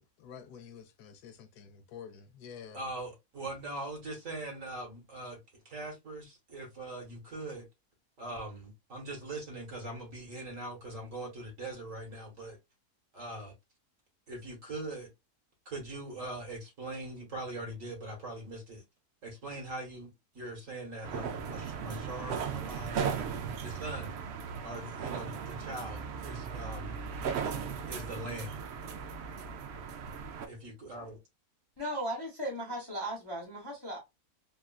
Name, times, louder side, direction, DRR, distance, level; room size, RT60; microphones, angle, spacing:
voice 1, 0.2-2.9, left 7 dB, 85° left, 1.2 m, -49 dB
voice 2, 2.7-5.4 5.7-7.6 8.2-12.6 13.1-13.5 14.3-15.1 15.7-18.8 19.2-20.1 20.4-23.3 23.6-24.2 24.6-27.0 27.9-28.6 30.5-31.2, right 1 dB, 55° right, 1.7 m, -41 dB
sound 1, 21.0-30.5, right 6 dB, 80° right, 0.6 m, -37 dB
voice 3, 31.8-34.0, right 1 dB, 25° left, 0.6 m, -36 dB
3.5 x 2.4 x 2.3 m
omnidirectional pair, 1.7 m